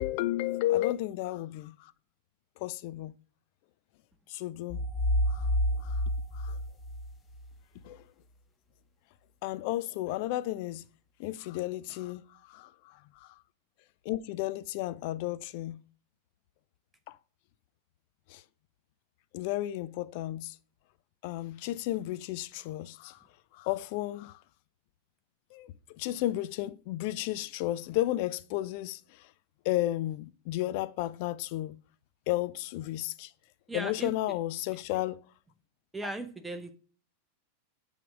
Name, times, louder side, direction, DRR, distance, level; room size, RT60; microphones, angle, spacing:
voice 1, 0.0-1.9 2.6-3.1 4.3-4.8 5.3-5.5 5.8-6.0 6.3-6.6 7.8-8.0 9.4-10.8 11.2-13.3 14.0-15.8 17.1-17.2 18.3-18.4 19.3-20.6 21.2-23.2 23.5-24.4 25.5-29.3 29.6-31.8 32.3-33.3 33.7-35.2, left 15 dB, 45° left, 0.4 m, -33 dB
sound 1, 4.7-7.5, equal, 20° left, 0.9 m, -29 dB
voice 2, 33.7-34.4 35.9-36.7, right 2 dB, 5° right, 1.1 m, -38 dB
9.2 x 3.6 x 6.1 m
figure-of-eight pair, 90°, 0 cm